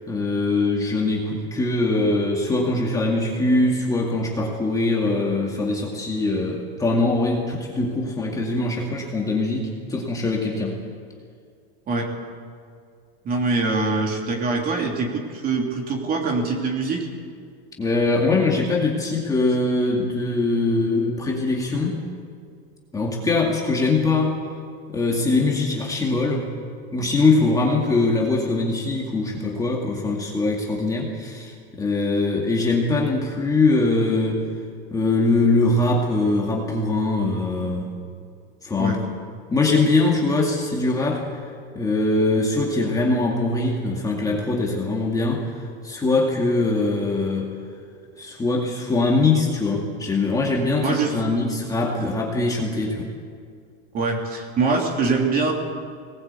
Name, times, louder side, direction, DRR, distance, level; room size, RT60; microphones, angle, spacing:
voice 1, 0.1-10.8 17.8-22.0 22.9-24.3 24.9-26.5 26.9-34.5 34.9-37.9 38.6-39.0 39.5-41.4 41.8-47.5 48.2-53.1, left 2 dB, 10° left, -2 dB, 2.2 m, -22 dB
voice 2, 13.2-17.1 38.8-39.0 50.8-51.2 53.9-55.5, right 3 dB, 30° right, 1 dB, 3.2 m, -23 dB
22.0 x 19.5 x 8.3 m, 2.2 s
supercardioid pair, 165°, 31 cm